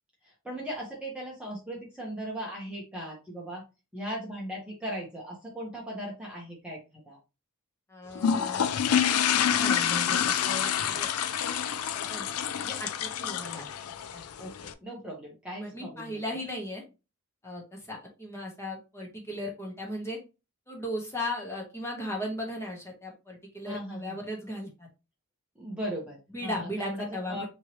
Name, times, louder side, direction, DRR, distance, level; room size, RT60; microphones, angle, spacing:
voice 1, 0.2-3.6 3.9-7.2 14.4-16.4 23.6-24.2 25.6-27.5, equal, 5° right, -4 dB, 1.0 m, -38 dB
voice 2, 7.9-8.6 9.5-11.1 11.9-12.3 12.6-13.6 14.1-14.2 15.6-16.8 17.4-20.2 20.7-24.9 26.3-27.5, left 1 dB, 10° left, -1 dB, 1.2 m, -37 dB
sound 1, 8.2-14.7, left 8 dB, 90° left, 0.4 m, -27 dB
4.5 x 3.0 x 3.1 m, 0.28 s
head